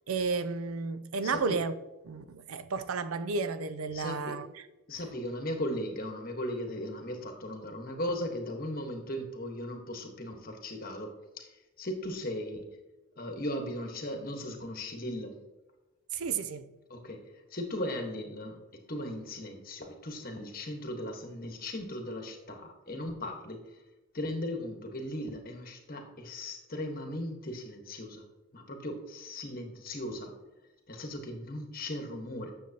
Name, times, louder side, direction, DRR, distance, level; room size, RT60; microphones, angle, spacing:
voice 1, 0.1-1.7 2.0-4.6 16.1-16.7, right 4 dB, 90° right, 0.5 m, -32 dB
voice 2, 1.2-1.6 3.9-4.4 4.9-12.7 13.2-15.4 16.9-18.6 18.9-23.6 24.1-28.2 28.5-30.4 30.9-32.5, left 1 dB, 45° left, 1.3 m, -37 dB
9.3 x 6.9 x 2.9 m
head